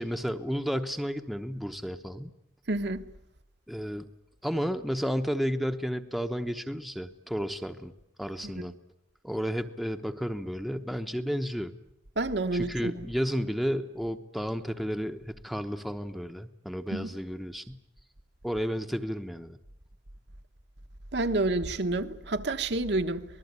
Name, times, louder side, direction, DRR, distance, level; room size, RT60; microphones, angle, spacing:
voice 1, 0.0-2.3 3.7-4.1 4.4-7.9 8.2-8.7 9.2-11.7 12.5-17.8 18.4-19.6, equal, ahead, 1.0 m, -32 dB
voice 2, 2.7-3.0 8.4-8.7 12.2-13.1 16.9-17.1 21.1-23.3, right 2 dB, 60° right, 1.3 m, -29 dB
25.5 x 20.0 x 9.7 m
head